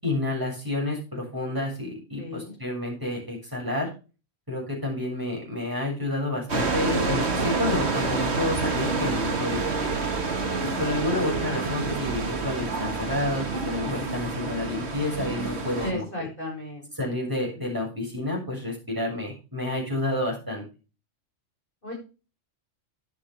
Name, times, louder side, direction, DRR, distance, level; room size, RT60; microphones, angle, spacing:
voice 1, 0.0-3.9 4.5-9.9 10.8-16.3 16.9-20.6, left 2 dB, 15° right, -3 dB, 7.3 m, -30 dB
voice 2, 2.2-2.5 15.8-16.9 21.8-22.0, left 1 dB, 40° left, -2 dB, 6.2 m, -34 dB
sound 1, 6.5-15.9, right 3 dB, 55° right, 2.0 m, -28 dB
12.0 x 9.9 x 3.5 m, 0.32 s
omnidirectional pair, 1.4 m